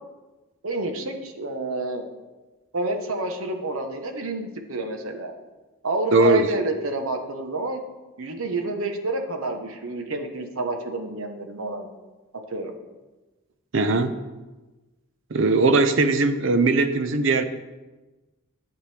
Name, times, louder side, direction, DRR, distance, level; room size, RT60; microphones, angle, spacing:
voice 1, 0.6-2.1 2.7-5.3 5.8-7.8 8.2-11.9 12.5-12.7, right 2 dB, 85° right, 5 dB, 1.1 m, -29 dB
voice 2, 6.1-6.5 13.7-14.1 15.3-17.4, right 3 dB, 65° right, 9 dB, 0.7 m, -19 dB
11.0 x 8.2 x 3.4 m, 1.2 s
head